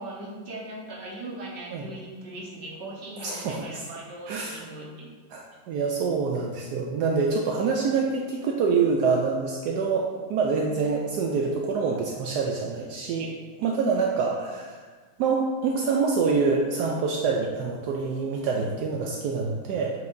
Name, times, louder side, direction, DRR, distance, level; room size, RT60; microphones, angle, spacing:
voice 1, 0.0-5.1 18.4-18.7, right 1 dB, 40° right, -3 dB, 1.3 m, -40 dB
voice 2, 3.2-3.6 4.3-4.6 5.3-13.3 13.6-14.8 15.2-19.9, right 4 dB, 75° right, 0 dB, 1.1 m, -26 dB
8.0 x 4.7 x 2.6 m, 1.5 s
omnidirectional pair, 1.8 m